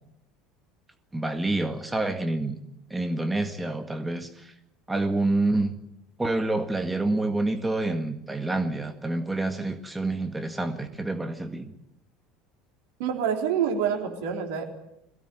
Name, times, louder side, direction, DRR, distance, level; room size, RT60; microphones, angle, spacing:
voice 1, 1.1-2.6 2.9-4.5 4.9-5.7 6.2-11.7, right 2 dB, 10° right, 7 dB, 1.9 m, -27 dB
voice 2, 13.0-14.6, right 8 dB, 60° right, 3 dB, 3.8 m, -27 dB
22.0 x 17.5 x 9.3 m, 0.81 s
figure-of-eight pair, 70°, 0 cm